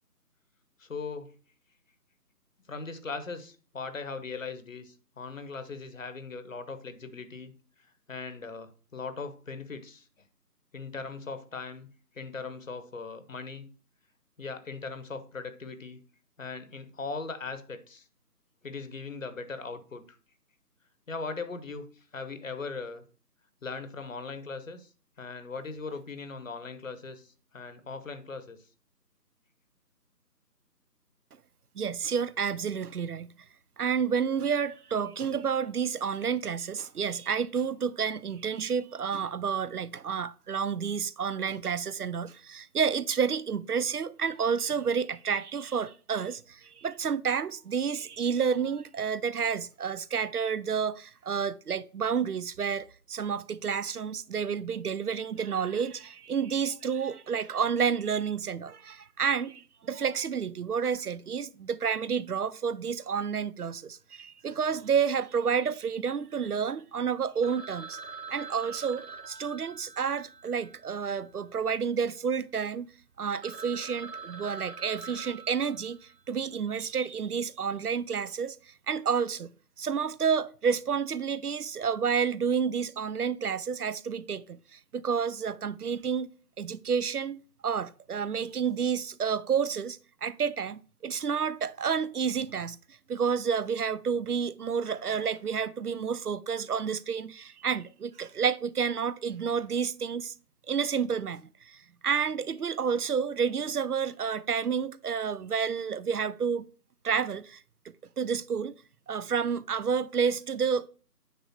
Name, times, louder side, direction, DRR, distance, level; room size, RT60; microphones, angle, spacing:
voice 1, 0.8-1.3 2.7-7.5 8.1-10.0 10.7-11.9 12.1-13.7 14.4-16.0 16.4-18.0 18.6-20.2 21.1-21.9 22.1-23.0 23.6-24.9 25.2-28.6, left 4 dB, 50° left, 1.1 m, -39 dB
voice 2, 31.8-33.3 33.8-68.0 68.3-72.9 73.2-76.0 76.3-78.6 78.9-79.5 79.8-86.3 86.6-92.8 93.1-100.3 100.7-101.8 102.0-106.7 107.0-107.6 108.2-108.7 109.1-110.9, right 6 dB, 65° right, 0.6 m, -30 dB
Telephone, 67.4-71.8 72.0-72.1 72.7-72.8 73.1-73.2 73.4-76.4, right 4 dB, 80° right, 1.1 m, -44 dB
9.3 x 3.4 x 5.8 m
figure-of-eight pair, 160°, 49 cm